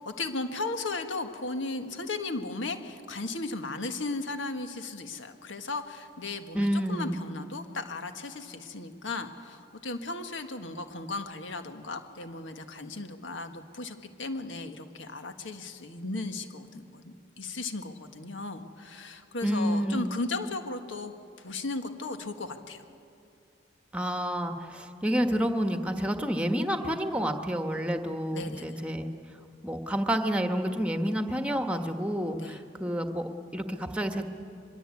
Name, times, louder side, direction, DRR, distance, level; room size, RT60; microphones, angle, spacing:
voice 1, 0.0-22.8 28.3-28.8 32.4-32.6, left 3 dB, 80° left, 7 dB, 1.6 m, -36 dB
voice 2, 6.5-7.2 19.4-20.1 23.9-29.1 29.6-34.2, equal, 5° right, 6 dB, 1.2 m, -29 dB
24.0 x 21.5 x 8.5 m, 2.6 s
head